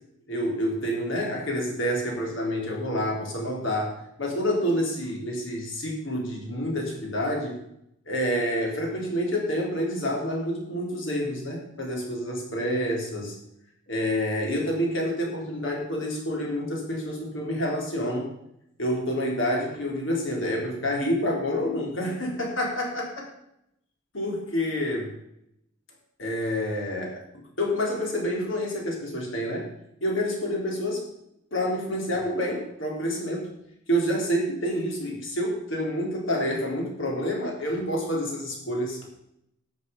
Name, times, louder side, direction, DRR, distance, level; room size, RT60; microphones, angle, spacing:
voice 1, 0.3-7.6 8.1-13.4 13.9-18.3 18.8-23.2 24.1-25.1 26.2-27.2 27.6-29.7 30.0-31.1 31.5-33.5 33.9-39.1, equal, 65° left, -1 dB, 3.9 m, -28 dB
13.0 x 8.5 x 5.5 m, 0.78 s
head